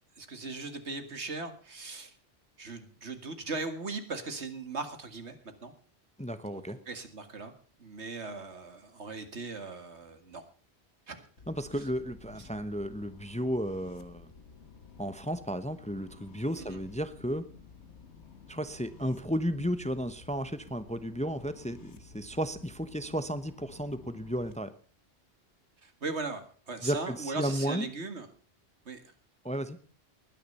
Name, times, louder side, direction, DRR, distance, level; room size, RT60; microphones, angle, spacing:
voice 1, 0.2-2.1 2.6-5.7 6.4-7.5 7.8-10.4 11.1-11.2 16.6-16.8 25.8-28.3 28.9-29.0, right 3 dB, 80° right, 8 dB, 2.3 m, -39 dB
voice 2, 6.2-6.8 11.5-14.3 15.0-17.5 18.5-24.7 26.8-27.9 29.4-29.8, equal, 5° left, 12 dB, 0.8 m, -33 dB
sound 1, 11.4-24.5, left 5 dB, 90° left, 1.6 m, -53 dB
20.0 x 10.0 x 5.5 m, 0.41 s
omnidirectional pair, 1.1 m